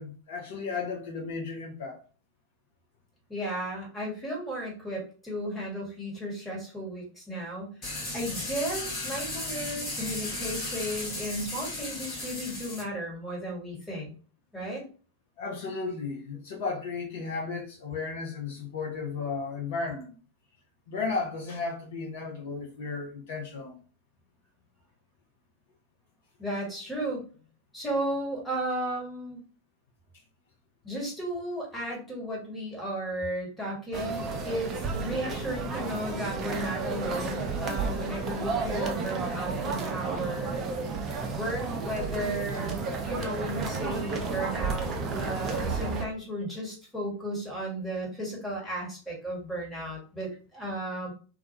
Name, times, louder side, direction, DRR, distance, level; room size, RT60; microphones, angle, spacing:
voice 1, 0.0-2.0 15.4-20.1 20.9-23.8, left 4 dB, 55° left, 0.5 m, -34 dB
voice 2, 3.3-14.1 14.5-14.8 26.4-27.3 27.7-29.4 30.8-40.6 41.3-42.7 43.0-51.1, right 1 dB, 10° left, 1.2 m, -34 dB
sound 1, 7.8-12.8, left 2 dB, 30° left, 0.9 m, -35 dB
sound 2, 33.9-46.1, right 4 dB, 30° right, 0.4 m, -32 dB
2.3 x 2.1 x 2.7 m
figure-of-eight pair, 90°, 0 cm